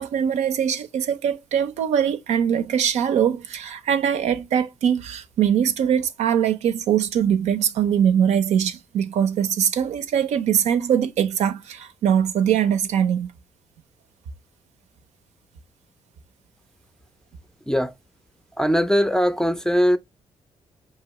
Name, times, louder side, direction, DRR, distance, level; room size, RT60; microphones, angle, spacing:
voice 1, 0.0-13.3, right 8 dB, 80° right, 0.5 m, -22 dB
voice 2, 17.7-18.0 18.6-20.0, equal, 5° left, 0.4 m, -20 dB
4.8 x 2.8 x 2.9 m
cardioid pair, 75°, 11 cm